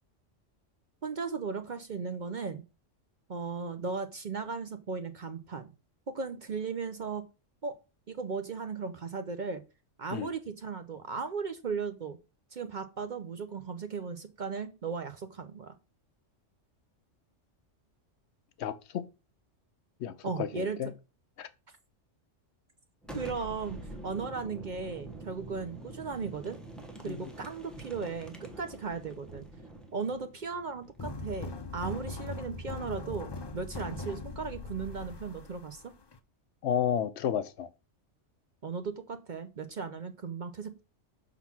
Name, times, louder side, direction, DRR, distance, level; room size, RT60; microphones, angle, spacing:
voice 1, 1.0-2.6 3.3-5.7 6.1-7.2 7.6-7.7 8.1-9.6 10.0-12.2 12.5-15.7 20.2-20.8 23.1-23.8 24.0-26.6 27.0-29.4 29.9-35.9 38.6-40.8, right 5 dB, 50° right, 0.7 m, -36 dB
voice 2, 18.6-19.0 20.0-20.1 20.4-20.9 21.4-21.5 27.1-27.3 36.6-37.7, left 9 dB, 70° left, 0.8 m, -31 dB
Boom, 23.0-32.6, right 2 dB, ahead, 1.2 m, -47 dB
sound 1, 31.0-36.2, left 3 dB, 40° left, 0.3 m, -40 dB
5.9 x 3.9 x 5.8 m
omnidirectional pair, 1.3 m